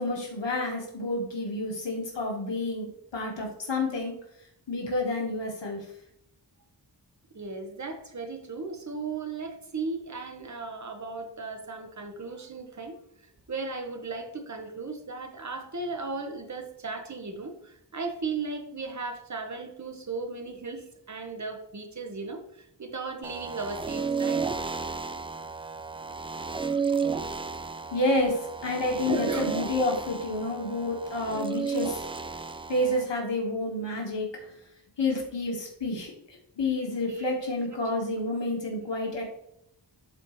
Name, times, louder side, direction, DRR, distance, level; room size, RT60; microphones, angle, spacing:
voice 1, 0.0-4.2 4.7-5.8 27.9-32.0 32.7-34.5 35.0-36.1 36.6-39.2, left 2 dB, 90° left, -1 dB, 1.7 m, -29 dB
voice 2, 7.3-24.4 29.0-29.6 37.1-37.3, right 3 dB, 40° right, 4 dB, 1.2 m, -36 dB
sound 1, 23.2-33.0, right 5 dB, 15° right, 0.3 m, -33 dB
11.5 x 4.3 x 3.2 m, 0.75 s
wide cardioid pair, 90°, 43 cm